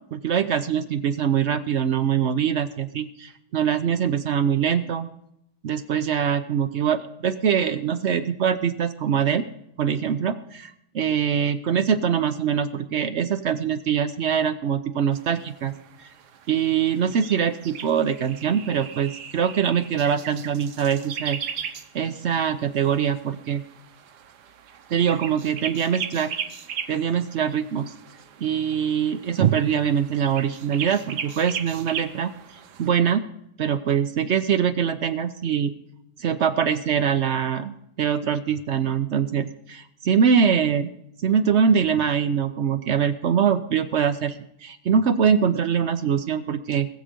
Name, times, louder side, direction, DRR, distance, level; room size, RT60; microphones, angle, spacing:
voice 1, 0.1-5.1 5.6-9.4 9.8-15.7 16.5-21.4 21.9-23.6 24.9-26.3 26.9-27.9 28.4-32.3 32.8-33.2 33.6-35.7 36.2-40.9 41.2-46.9, right 7 dB, 60° right, 9 dB, 0.8 m, -23 dB
sound 1, 15.1-32.9, right 8 dB, 90° right, 1.5 m, -38 dB
20.0 x 7.4 x 5.2 m, 0.75 s
omnidirectional pair, 1.7 m